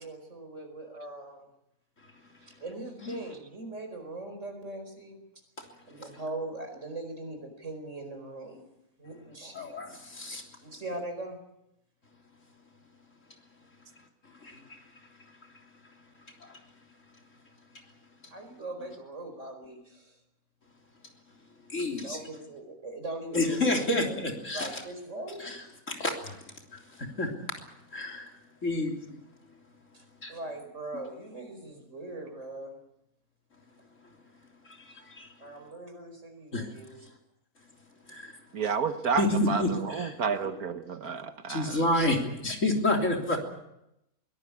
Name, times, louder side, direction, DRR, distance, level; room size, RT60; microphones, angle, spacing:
voice 1, 0.0-1.5 2.6-5.2 5.9-8.6 9.0-9.6 10.6-11.4 18.3-20.2 21.9-24.2 24.5-25.7 29.9-32.8 35.4-37.0 41.0-41.1, right 2 dB, 50° right, 5.1 m, -40 dB
voice 2, 9.5-10.4 14.4-14.8 16.4-16.6 21.7-22.2 23.3-24.8 25.4-26.4 26.7-27.3 27.9-28.3 28.6-29.2 30.2-30.3 34.7-35.3 36.5-36.7 38.1-38.4 39.2-40.2 41.5-43.4, left 2 dB, 55° left, 3.7 m, -30 dB
voice 3, 38.5-42.1, right 6 dB, 75° right, 1.7 m, -31 dB
23.0 x 17.5 x 8.4 m
omnidirectional pair, 1.6 m